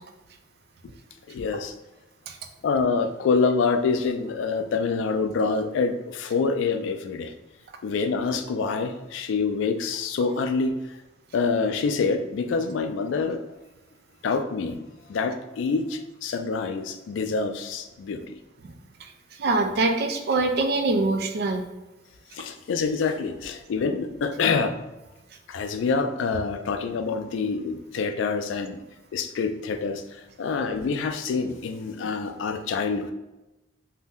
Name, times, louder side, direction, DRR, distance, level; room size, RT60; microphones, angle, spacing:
voice 1, 1.3-1.7 2.6-7.3 7.8-10.7 11.3-13.4 14.2-14.8 15.1-18.2 22.3-24.8 25.5-28.8 29.1-33.1, left 4 dB, 75° left, 7 dB, 0.3 m, -26 dB
voice 2, 19.4-21.7, right 3 dB, 55° right, 5 dB, 0.4 m, -24 dB
2.6 x 2.1 x 3.5 m, 0.99 s
head